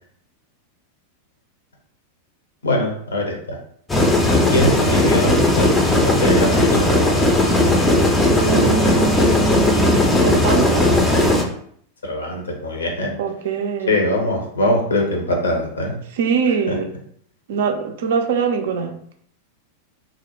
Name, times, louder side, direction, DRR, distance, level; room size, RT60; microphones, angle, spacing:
voice 1, 2.6-3.6 4.5-6.9 12.0-13.2 13.9-16.0 16.7-16.8, left 1 dB, 70° left, 1 dB, 0.6 m, -22 dB
sound 1, 3.9-11.4, left 1 dB, 10° left, 0.4 m, -16 dB
voice 2, 8.3-11.0 13.2-14.2 16.1-16.9 17.5-19.0, right 6 dB, 55° right, 5 dB, 0.3 m, -23 dB
2.4 x 2.0 x 2.9 m, 0.64 s
figure-of-eight pair, 90°, 0 cm